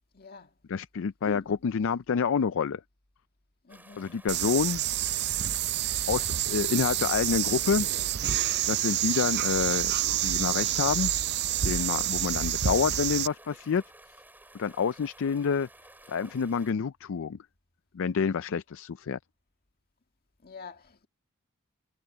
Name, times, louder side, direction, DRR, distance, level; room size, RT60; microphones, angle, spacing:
voice 1, 0.1-0.5 1.2-1.6 3.6-4.2 20.4-21.1, left 4 dB, 45° left, 1.9 m, -46 dB
voice 2, 0.7-2.8 4.0-4.8 6.1-7.9 8.7-9.9 10.2-11.1 11.6-13.8 14.5-15.7 16.1-17.4 17.9-19.2, left 6 dB, 60° left, 0.4 m, -28 dB
sound 1, 3.7-16.7, right 1 dB, 10° right, 6.4 m, -54 dB
sound 2, 4.3-13.3, right 12 dB, 50° right, 0.5 m, -28 dB
head